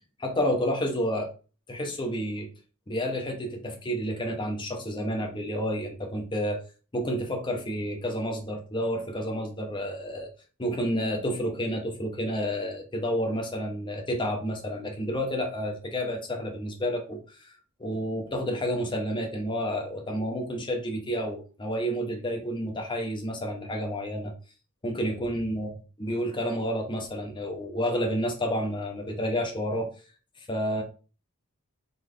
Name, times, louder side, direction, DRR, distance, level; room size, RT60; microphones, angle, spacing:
voice 1, 0.2-1.3 1.7-2.5 2.9-6.6 6.9-10.3 10.6-24.3 24.8-25.7 26.0-29.9 30.5-30.8, equal, 20° left, 2 dB, 0.9 m, -30 dB
4.0 x 3.4 x 3.3 m, 0.35 s
head